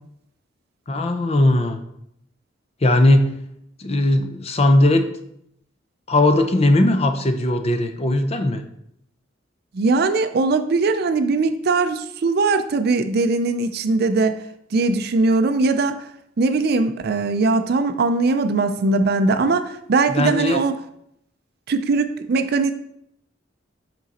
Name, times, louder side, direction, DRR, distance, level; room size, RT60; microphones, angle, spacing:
voice 1, 0.9-1.8 2.8-3.3 3.8-5.1 6.1-8.6 20.1-20.6, left 1 dB, 30° left, 7 dB, 0.6 m, -18 dB
voice 2, 9.7-14.3 14.7-16.0 16.4-20.8 21.7-22.7, right 3 dB, 55° right, 9 dB, 0.4 m, -20 dB
7.4 x 3.9 x 4.2 m, 0.75 s
head